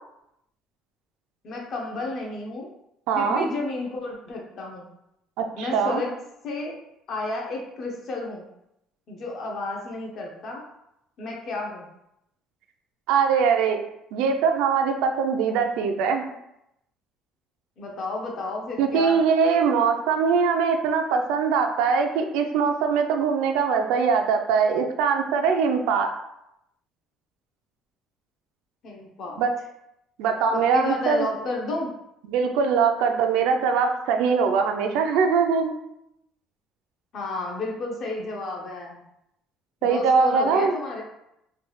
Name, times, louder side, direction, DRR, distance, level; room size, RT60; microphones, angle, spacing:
voice 1, 1.4-2.7 3.1-4.9 5.6-6.1 6.4-6.8 7.1-8.5 9.1-10.6 11.2-11.9 17.8-19.2 28.8-29.4 30.5-31.9 37.1-39.0 39.8-41.0, left 2 dB, 40° left, 0 dB, 0.7 m, -31 dB
voice 2, 3.1-3.4 5.4-6.0 13.1-13.8 14.1-16.3 18.8-26.1 29.4-29.5 30.2-31.3 32.3-35.7 39.8-40.7, right 5 dB, 80° right, 5 dB, 0.4 m, -22 dB
3.2 x 2.3 x 3.1 m, 0.82 s
cardioid pair, 160°, 0 cm